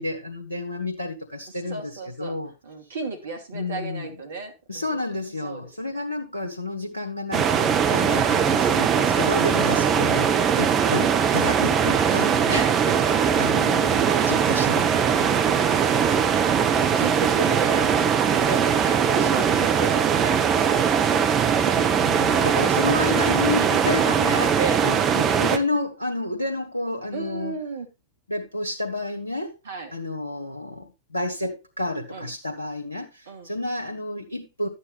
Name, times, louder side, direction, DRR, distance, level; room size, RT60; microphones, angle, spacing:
voice 1, 0.0-2.5 3.5-4.1 4.7-12.6 13.4-15.3 22.0-27.6 28.3-29.6 29.9-34.7, left 2 dB, 85° left, 1.2 m, -30 dB
voice 2, 1.7-5.1 5.4-5.7 8.3-8.9 12.5-13.4 14.1-14.3 15.1-21.7 22.2-22.7 23.8-24.0 24.6-24.8 27.1-27.9 29.6-29.9 32.1-32.3 33.3-33.5, right 3 dB, 65° right, 2.8 m, -35 dB
sound 1, 7.3-25.6, right 7 dB, 30° right, 1.1 m, -21 dB
12.0 x 8.1 x 3.4 m
figure-of-eight pair, 90°, 0 cm